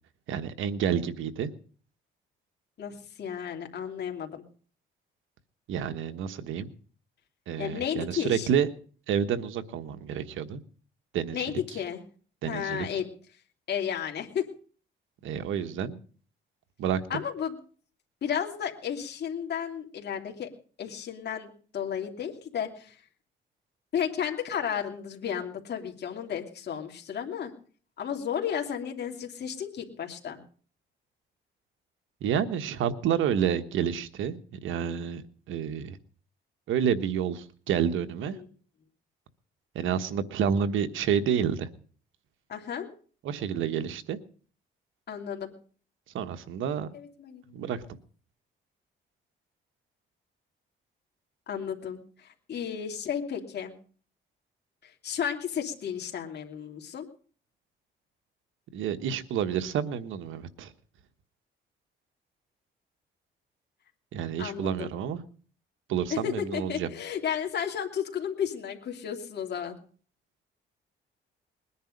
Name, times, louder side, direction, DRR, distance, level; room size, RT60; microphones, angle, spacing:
voice 1, 0.3-1.5 5.7-6.7 7.5-8.7 9.1-10.6 11.1-11.4 12.4-12.9 15.2-16.0 16.8-17.2 32.2-36.0 36.7-38.4 39.7-41.7 43.2-44.2 46.1-46.9 47.5-47.8 58.7-60.7 64.1-65.2 65.9-66.9, right 8 dB, 80° right, 10 dB, 1.3 m, -29 dB
voice 2, 2.8-4.4 7.6-8.5 11.3-12.0 12.5-13.1 13.7-14.5 17.1-17.6 18.2-20.5 20.8-23.0 23.9-27.5 28.0-30.4 38.3-38.5 42.5-42.9 45.1-45.5 46.9-47.5 51.5-53.7 54.8-57.1 64.4-64.9 66.1-69.8, left 8 dB, 55° left, 2 dB, 2.9 m, -33 dB
21.0 x 10.0 x 5.2 m, 0.43 s
cardioid pair, 90°, 20 cm